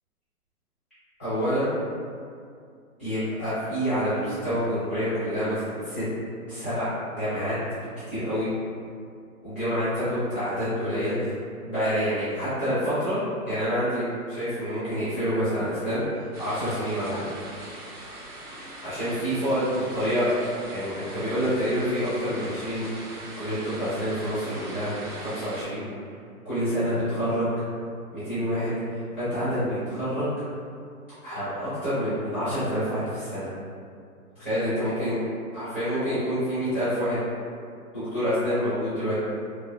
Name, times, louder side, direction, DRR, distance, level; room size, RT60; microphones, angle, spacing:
voice 1, 1.2-1.7 3.0-6.0 6.5-7.5 8.1-8.5 9.4-11.3 11.6-13.2 13.5-17.3 18.8-20.3 20.7-25.8 26.4-27.5 28.1-30.3 31.2-33.5 34.3-35.2 35.5-37.2 37.9-39.2, equal, 10° right, -20 dB, 0.5 m, -27 dB
sound 1, 16.3-25.6, right 1 dB, 85° right, 1.0 m, -41 dB
2.8 x 2.2 x 2.3 m, 2.3 s
hypercardioid pair, 165°, 45 cm